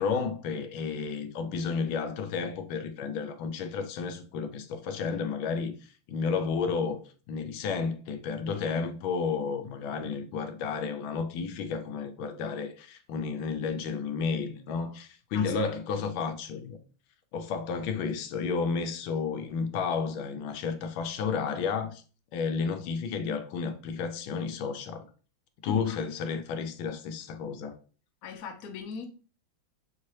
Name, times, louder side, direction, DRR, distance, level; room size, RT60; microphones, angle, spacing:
voice 1, 0.0-5.7 6.1-7.0 7.3-16.8 17.3-22.0 22.3-25.0 25.6-27.7, left 5 dB, 85° left, 1.4 m, -32 dB
voice 2, 25.7-26.0 28.2-29.1, left 6 dB, 60° left, 1.0 m, -39 dB
5.7 x 2.8 x 3.1 m
omnidirectional pair, 2.1 m